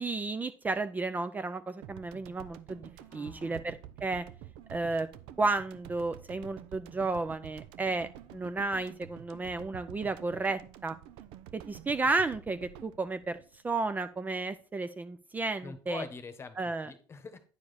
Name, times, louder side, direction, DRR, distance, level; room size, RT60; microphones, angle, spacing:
voice 1, 0.0-4.2 4.7-5.1 5.4-10.9 11.5-13.4 13.6-16.0 16.6-16.9, right 3 dB, 20° right, 11 dB, 0.5 m, -32 dB
sound 1, 1.8-14.3, right 11 dB, 75° right, 0.6 m, -49 dB
voice 2, 3.0-3.6 15.6-16.6 16.8-17.4, left 5 dB, 30° left, 11 dB, 1.1 m, -44 dB
9.6 x 4.9 x 4.1 m, 0.40 s
supercardioid pair, 100°, 9 cm